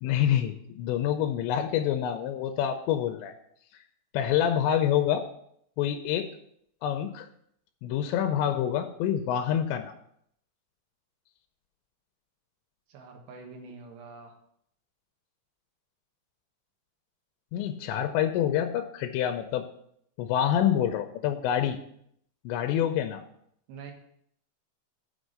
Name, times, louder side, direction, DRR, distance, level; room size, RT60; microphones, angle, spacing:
voice 1, 0.0-3.3 3.7-3.8 4.1-5.2 5.8-6.3 6.8-7.3 7.8-9.9 17.5-19.7 20.2-21.8 22.5-23.2, left 10 dB, 85° left, 5 dB, 2.8 m, -27 dB
voice 2, 12.9-14.4 23.7-23.9, right 4 dB, 75° right, 3 dB, 3.4 m, -45 dB
7.2 x 6.1 x 6.4 m, 0.69 s
omnidirectional pair, 5.2 m